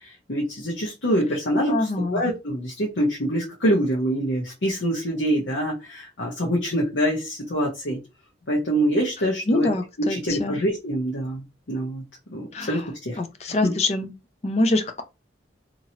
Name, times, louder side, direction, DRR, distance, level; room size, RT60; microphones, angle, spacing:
voice 1, 0.0-8.0 8.5-9.7 10.0-11.4 11.7-13.7, equal, 80° left, 0.9 m, -25 dB
voice 2, 1.7-2.2 9.5-10.6 12.5-12.7 13.2-14.1 14.4-15.0, left 2 dB, 35° left, 0.4 m, -25 dB
2.8 x 2.8 x 2.8 m
head